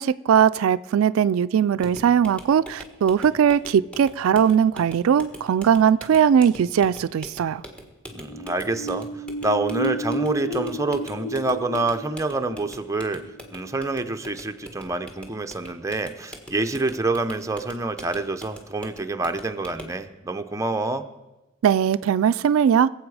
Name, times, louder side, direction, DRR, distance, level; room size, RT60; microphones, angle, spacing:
voice 1, 0.0-7.6 21.6-22.9, right 8 dB, 85° right, 0.3 m, -19 dB
sound 1, 1.8-20.0, equal, 5° left, 1.5 m, -44 dB
voice 2, 8.1-9.1 9.4-21.1, right 2 dB, 15° right, 0.6 m, -27 dB
sound 2, 8.2-14.4 14.8-14.9, equal, 85° left, 1.4 m, -33 dB
22.0 x 7.8 x 4.8 m
head